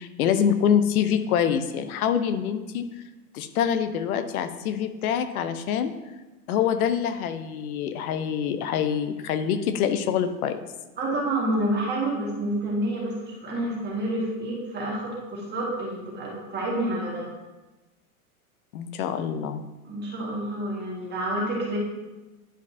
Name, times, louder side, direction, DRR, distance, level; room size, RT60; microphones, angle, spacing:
voice 1, 0.0-2.9 3.3-5.9 6.5-10.6 18.7-19.6, left 8 dB, 70° left, 10 dB, 0.8 m, -25 dB
voice 2, 11.0-17.3 19.8-21.8, right 1 dB, 20° right, -4 dB, 1.8 m, -28 dB
10.5 x 5.0 x 2.7 m, 1.1 s
hypercardioid pair, 125°, 45 cm